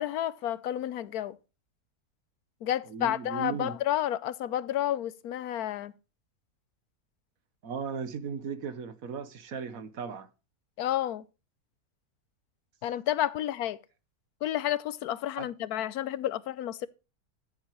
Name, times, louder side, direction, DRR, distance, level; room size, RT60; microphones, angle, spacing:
voice 1, 0.0-1.4 2.6-5.9 10.8-11.2 12.8-13.8 14.4-16.9, left 12 dB, 85° left, 1.2 m, -30 dB
voice 2, 2.9-3.8 7.6-10.3 15.4-15.5, right 6 dB, 65° right, 1.5 m, -36 dB
14.0 x 8.1 x 3.1 m
omnidirectional pair, 1.6 m